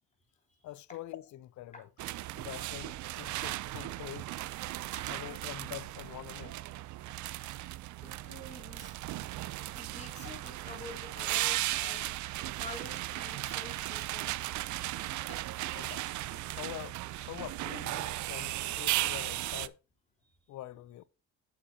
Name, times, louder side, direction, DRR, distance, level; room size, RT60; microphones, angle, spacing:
voice 1, 0.6-1.9 2.3-4.3 5.1-6.6 15.7-16.1 16.6-19.8 20.5-21.0, left 14 dB, 70° left, 0.6 m, -45 dB
sound 1, 2.0-19.7, right 16 dB, 70° right, 0.5 m, -36 dB
voice 2, 4.9-5.5 8.0-8.9 9.7-14.3 15.3-15.4 16.1-16.2 20.2-20.4, left 3 dB, 25° left, 3.5 m, -48 dB
8.6 x 8.1 x 2.8 m
cardioid pair, 90°, 30 cm